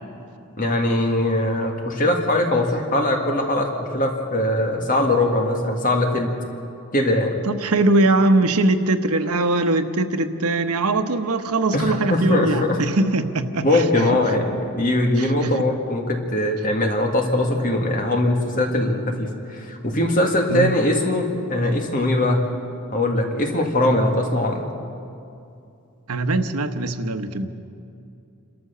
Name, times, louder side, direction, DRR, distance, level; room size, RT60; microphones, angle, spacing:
voice 1, 0.6-6.3 6.9-7.4 11.7-12.8 13.6-22.4 22.9-24.7, left 1 dB, 35° left, 2 dB, 1.9 m, -21 dB
voice 2, 7.4-14.3 15.2-15.7 20.5-20.8 26.1-27.5, right 2 dB, 90° right, 8 dB, 1.1 m, -21 dB
28.5 x 13.5 x 6.8 m, 2.6 s
head